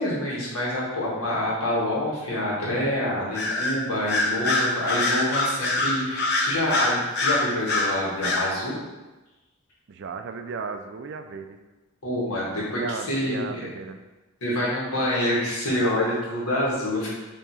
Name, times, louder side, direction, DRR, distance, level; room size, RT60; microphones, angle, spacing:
voice 1, 0.0-8.7 12.0-12.8 13.1-13.5 14.4-17.1, left 1 dB, 80° left, -5 dB, 1.5 m, -26 dB
Bird vocalization bird call bird song, 3.3-3.8 4.1-7.9 8.2-8.5, left 2 dB, 45° left, 0.6 m, -24 dB
voice 2, 9.9-11.6 12.7-14.0, right 5 dB, 50° right, 7 dB, 0.3 m, -35 dB
4.5 x 2.9 x 4.0 m, 1.1 s
head